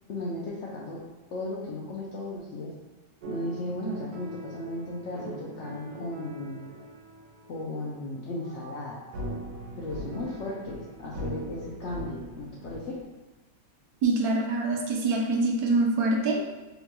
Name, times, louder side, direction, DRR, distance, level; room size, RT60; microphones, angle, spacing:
voice 1, 0.1-1.0 1.3-2.7 3.3-6.6 7.5-9.1 9.8-13.0, left 1 dB, 80° left, -5 dB, 0.6 m, -35 dB
sound 1, 3.2-13.0, right 1 dB, 85° right, 1.3 m, -41 dB
voice 2, 14.0-16.5, right 2 dB, 70° right, 0 dB, 1.0 m, -25 dB
3.8 x 2.2 x 2.9 m, 1.1 s
omnidirectional pair, 1.8 m